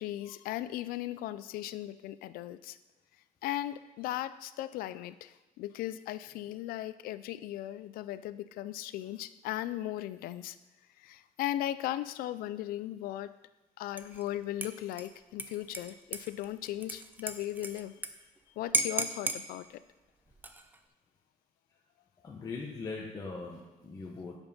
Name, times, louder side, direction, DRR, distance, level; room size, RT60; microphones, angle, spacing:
voice 1, 0.0-2.8 3.4-10.6 11.0-13.3 13.8-17.9 18.6-19.8, left 13 dB, 85° left, 14 dB, 0.4 m, -37 dB
Dishes pots and pans / Liquid, 14.0-14.3 14.6-18.1 18.4-18.5 18.7-19.4 20.3-20.8, right 2 dB, 10° right, 0.5 m, -35 dB
voice 2, 22.2-24.4, left 4 dB, 25° left, -2 dB, 0.9 m, -40 dB
7.2 x 5.3 x 5.4 m, 1.1 s
cardioid pair, 140°, 15 cm